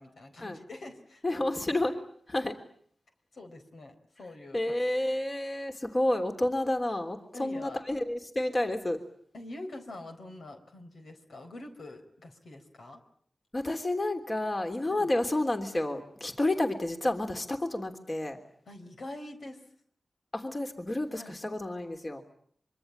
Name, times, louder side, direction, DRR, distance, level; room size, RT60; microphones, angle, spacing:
voice 1, 0.0-1.5 3.3-4.8 7.3-7.8 9.3-13.0 14.9-15.1 18.7-19.6 21.1-21.4, left 2 dB, 80° left, 5 dB, 4.3 m, -45 dB
voice 2, 1.2-1.9 2.3-2.6 4.5-9.0 13.5-18.4 20.3-22.2, left 1 dB, 35° left, 5 dB, 3.3 m, -30 dB
25.0 x 24.5 x 8.8 m, 0.63 s
wide cardioid pair, 65°, 0 cm